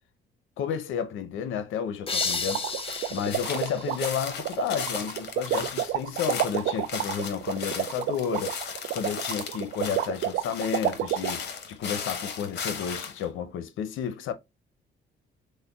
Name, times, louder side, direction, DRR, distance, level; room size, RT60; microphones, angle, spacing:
voice 1, 0.6-2.7 3.1-8.6 8.9-14.3, left 8 dB, 80° left, 0.6 m, -31 dB
sound 1, 2.1-4.8, left 4 dB, 30° left, 0.6 m, -33 dB
sound 2, 2.2-11.3, right 12 dB, 80° right, 0.4 m, -29 dB
sound 3, 2.9-13.2, left 6 dB, 60° left, 1.0 m, -37 dB
6.2 x 2.1 x 2.3 m
cardioid pair, 90°, 20 cm